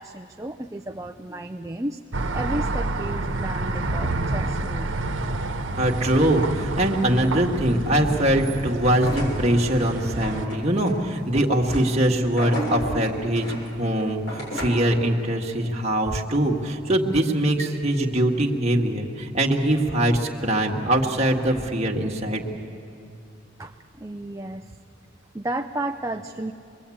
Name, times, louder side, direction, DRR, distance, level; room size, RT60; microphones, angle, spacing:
voice 1, 0.0-2.0 2.3-4.9 23.6-24.8 25.3-26.5, right 1 dB, 15° right, 5 dB, 0.5 m, -33 dB
sound 1, 2.1-10.5, right 2 dB, 75° right, 1.2 m, -29 dB
voice 2, 5.8-22.4, right 1 dB, 35° right, 0 dB, 2.0 m, -22 dB
sound 2, 9.0-14.9, equal, 70° left, 7.6 m, -34 dB
25.0 x 21.5 x 8.6 m, 2.5 s
head